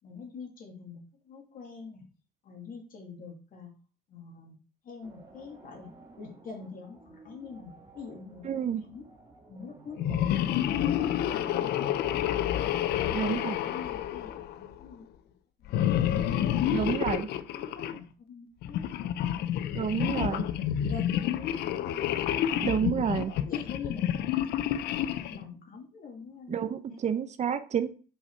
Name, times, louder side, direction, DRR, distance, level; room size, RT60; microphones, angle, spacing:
voice 1, 0.0-2.1 2.4-3.7 4.1-4.5 4.8-5.9 6.2-9.1 9.5-10.4 10.8-12.7 13.0-15.3 15.6-16.1 16.6-18.9 19.3-20.6 20.8-22.9 23.2-26.6 26.9-27.0, left 5 dB, 55° left, 2 dB, 2.5 m, -45 dB
sound 1, 5.0-11.6, right 2 dB, 25° right, 3.2 m, -54 dB
voice 2, 8.4-8.8 13.1-13.6 16.7-17.3 19.7-20.5 22.5-23.3 26.5-27.9, right 8 dB, 45° right, 11 dB, 0.8 m, -29 dB
sound 2, 10.0-14.8 15.7-18.0 18.6-25.4, left 11 dB, 75° left, 0.6 m, -29 dB
5.7 x 5.5 x 4.6 m, 0.37 s
cardioid pair, 110°, 17 cm